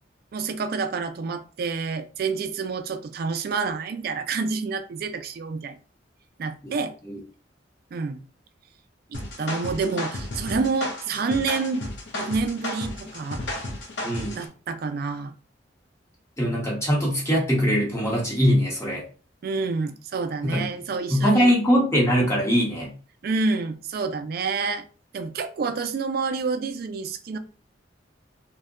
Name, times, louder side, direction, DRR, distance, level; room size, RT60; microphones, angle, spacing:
voice 1, 0.3-5.8 6.4-6.9 7.9-8.3 9.1-11.9 12.1-13.4 14.4-15.3 19.4-21.5 23.2-24.8 25.1-27.4, right 4 dB, 55° right, 0.3 m, -28 dB
sound 1, 9.1-14.5, left 1 dB, 65° left, 0.6 m, -33 dB
voice 2, 14.0-14.4 16.4-19.0 20.4-20.7 21.1-22.9, equal, 15° left, 0.9 m, -22 dB
2.7 x 2.1 x 2.4 m
head